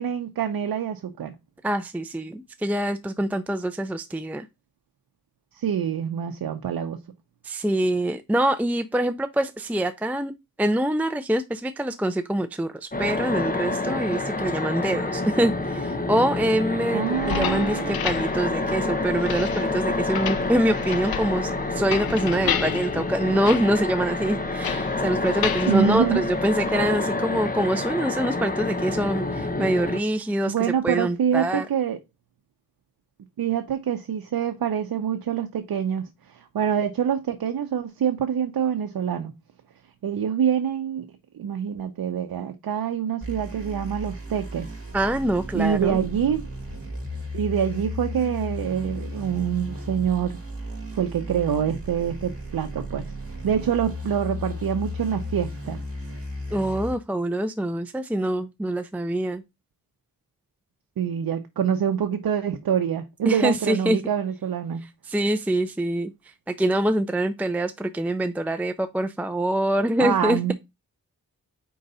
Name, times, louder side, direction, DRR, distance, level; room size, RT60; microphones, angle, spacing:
voice 1, 0.0-1.3 5.6-7.0 16.9-18.0 25.7-26.2 30.5-32.0 33.4-39.3 40.0-44.7 45.5-46.4 47.3-50.4 51.0-53.1 53.4-55.8 61.0-64.8 70.0-70.5, right 8 dB, 90° right, 0.7 m, -26 dB
voice 2, 1.6-4.5 7.4-10.3 10.6-31.7 44.9-46.0 56.5-59.4 63.3-64.0 64.8-66.1 66.5-70.5, right 1 dB, 5° right, 0.5 m, -25 dB
sound 1, 12.9-30.0, left 2 dB, 25° left, 0.9 m, -28 dB
sound 2, 17.1-26.8, left 9 dB, 85° left, 0.6 m, -33 dB
sound 3, 43.2-56.9, left 1 dB, 40° right, 2.3 m, -35 dB
4.7 x 3.8 x 5.4 m
cardioid pair, 60°, 35 cm